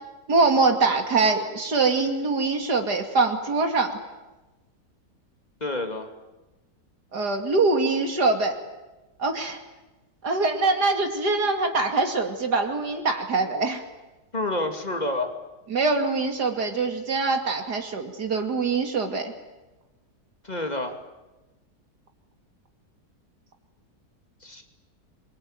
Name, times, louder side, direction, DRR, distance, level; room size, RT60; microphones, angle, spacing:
voice 1, 0.3-4.0 7.1-8.6 9.2-9.6 10.2-13.8 15.7-19.3, right 3 dB, 75° right, 5 dB, 3.1 m, -23 dB
voice 2, 5.6-6.1 14.3-15.3 20.4-21.0 24.4-24.6, left 2 dB, 25° left, 5 dB, 2.7 m, -28 dB
27.5 x 23.5 x 9.0 m, 1.1 s
omnidirectional pair, 1.8 m